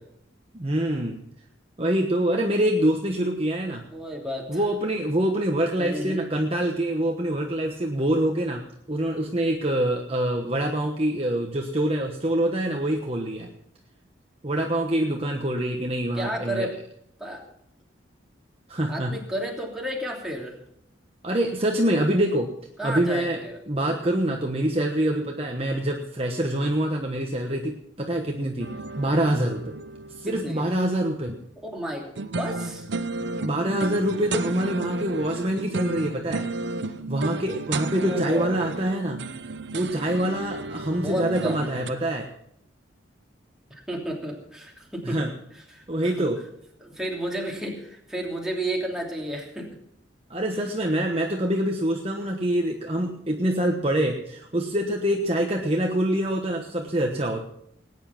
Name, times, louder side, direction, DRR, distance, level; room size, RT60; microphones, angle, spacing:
voice 1, 0.5-1.2 1.8-3.8 4.5-8.6 8.9-13.5 14.4-16.7 18.7-19.1 21.2-22.5 22.8-23.4 23.7-29.7 30.2-31.4 33.4-36.4 37.1-39.2 39.7-42.3 45.0-45.3 45.9-46.4 50.3-57.4, right 1 dB, 30° right, 2 dB, 1.2 m, -25 dB
voice 2, 3.9-4.6 5.8-6.3 16.1-16.8 17.2-17.4 18.9-20.6 22.8-23.6 30.3-30.6 31.6-32.1 32.4-32.9 38.0-38.5 41.0-41.7 43.7-45.2 45.7-46.3 46.8-49.8 51.0-51.1, right 1 dB, 5° right, -2 dB, 3.0 m, -32 dB
sound 1, 28.6-30.9 32.1-41.9, right 3 dB, 65° right, 0.8 m, -33 dB
19.0 x 9.6 x 6.0 m, 0.72 s
head